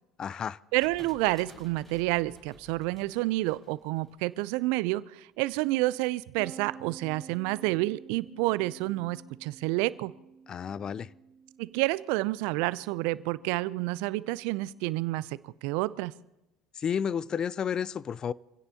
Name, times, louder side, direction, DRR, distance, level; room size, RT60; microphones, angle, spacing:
voice 1, 0.2-0.6 10.5-11.1 16.7-18.3, left 7 dB, 35° left, 0.5 m, -31 dB
sound 1, 0.7-4.6, equal, 10° left, 7.4 m, -54 dB
voice 2, 0.7-10.1 11.6-16.1, right 19 dB, 65° right, 0.5 m, -29 dB
sound 2, 6.4-15.8, right 6 dB, 25° right, 1.1 m, -52 dB
27.0 x 16.5 x 2.9 m
hypercardioid pair, 70°, 2 cm